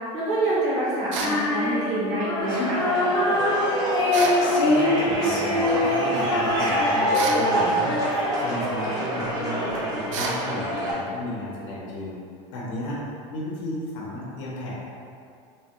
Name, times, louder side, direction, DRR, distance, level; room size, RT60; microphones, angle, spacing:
voice 1, 0.1-2.8, right 1 dB, 45° right, -9 dB, 1.1 m, -26 dB
Female singing, 1.1-8.5, left 2 dB, 30° left, 0.4 m, -25 dB
sound 1, 1.1-1.4 4.1-4.4 7.1-7.5 10.1-10.4, right 4 dB, 85° right, 0.4 m, -29 dB
sound 2, 2.4-10.9, right 1 dB, 25° right, 0.7 m, -26 dB
voice 2, 4.6-12.2 12.5-13.0 13.3-14.7, left 1 dB, 75° left, -6 dB, 0.7 m, -33 dB
3.0 x 2.2 x 2.9 m, 2.4 s
supercardioid pair, 165°, 16 cm